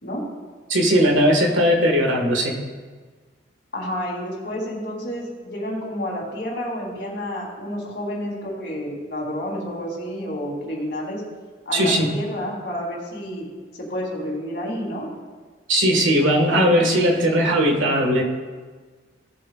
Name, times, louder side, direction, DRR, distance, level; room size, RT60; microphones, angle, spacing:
voice 1, 0.7-2.5 11.7-12.1 15.7-18.2, equal, 85° right, 1 dB, 1.6 m, -18 dB
voice 2, 3.7-11.2 11.7-13.5 13.8-15.1, equal, 55° left, -2 dB, 2.7 m, -30 dB
17.0 x 7.6 x 2.4 m, 1.5 s
head